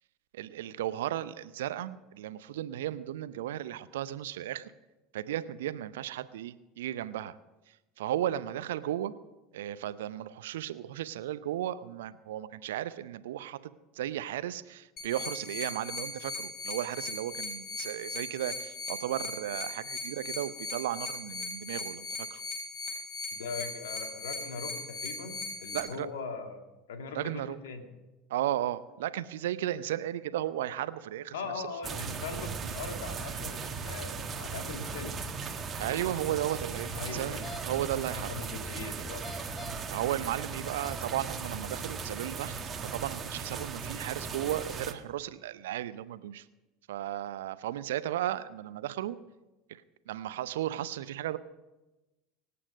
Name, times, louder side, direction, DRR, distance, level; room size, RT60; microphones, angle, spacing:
voice 1, 0.3-4.7 5.1-7.4 8.0-9.1 9.5-22.4 25.7-26.1 27.1-27.6 28.3-31.3 35.8-38.3 39.9-42.5 42.9-46.5 46.9-49.2 49.7-51.4, right 12 dB, 65° right, 15 dB, 0.6 m, -35 dB
sound 1, 15.0-25.8, left 3 dB, 35° left, 4.8 m, -38 dB
voice 2, 23.3-26.6 26.9-27.8 31.3-35.2 36.9-37.6 38.1-39.2, left 4 dB, 70° left, 5 dB, 2.0 m, -40 dB
sound 2, 31.8-44.9, right 5 dB, 30° right, 1.5 m, -38 dB
sound 3, 37.2-37.6 39.1-39.9 40.5-41.1, equal, 15° left, 2.2 m, -44 dB
25.0 x 8.6 x 5.2 m, 1.1 s
figure-of-eight pair, 75°, 0 cm